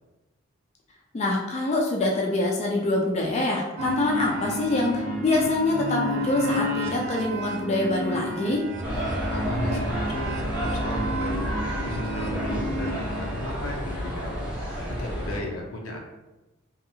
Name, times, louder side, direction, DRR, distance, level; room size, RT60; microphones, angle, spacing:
voice 1, 1.1-8.6, left 2 dB, 30° left, -1 dB, 0.3 m, -25 dB
sound 1, 3.8-13.5, right 1 dB, 65° right, 0.5 m, -31 dB
sound 2, 8.8-15.4, equal, 5° right, 0.6 m, -31 dB
voice 2, 8.9-10.3 10.6-14.4 14.7-16.0, left 1 dB, 85° left, 0 dB, 0.6 m, -35 dB
2.7 x 2.3 x 2.6 m, 1.1 s
head